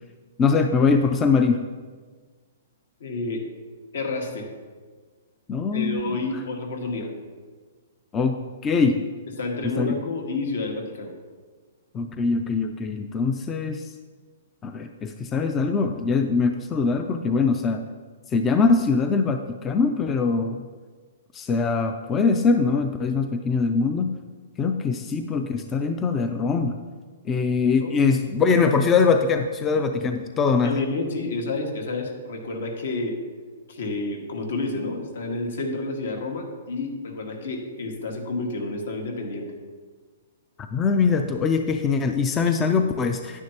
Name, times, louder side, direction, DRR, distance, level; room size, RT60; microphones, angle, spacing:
voice 1, 0.4-1.6 5.5-6.2 8.1-9.0 9.6-9.9 11.9-13.9 14.6-17.8 18.3-20.6 21.3-24.2 24.6-26.8 27.2-30.8 40.7-43.4, left 4 dB, 15° left, 6 dB, 0.3 m, -22 dB
voice 2, 3.0-3.4 3.9-4.5 5.7-7.1 9.4-11.1 27.8-27.9 30.6-33.1 33.7-39.5, left 2 dB, 70° left, 3 dB, 1.7 m, -29 dB
10.0 x 9.6 x 2.9 m, 1.5 s
hypercardioid pair, 165°, 0 cm